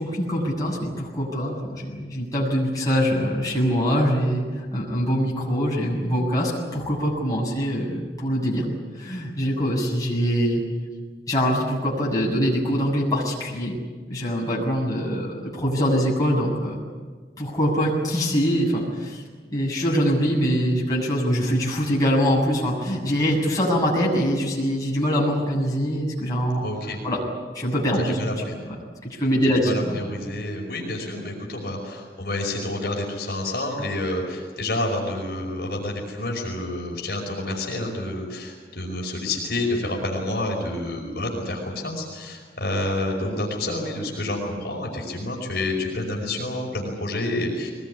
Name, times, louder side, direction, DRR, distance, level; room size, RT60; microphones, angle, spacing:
voice 1, 0.0-8.6 9.0-10.6 11.3-13.8 14.1-16.8 17.4-19.2 19.5-26.7 27.0-27.2 27.5-28.2 28.7-28.8 29.0-30.0, equal, 20° left, -4 dB, 7.3 m, -23 dB
voice 2, 26.6-27.0 28.1-28.6 29.6-47.7, left 1 dB, 60° left, -1 dB, 5.4 m, -29 dB
22.5 x 21.0 x 10.0 m, 1.5 s
head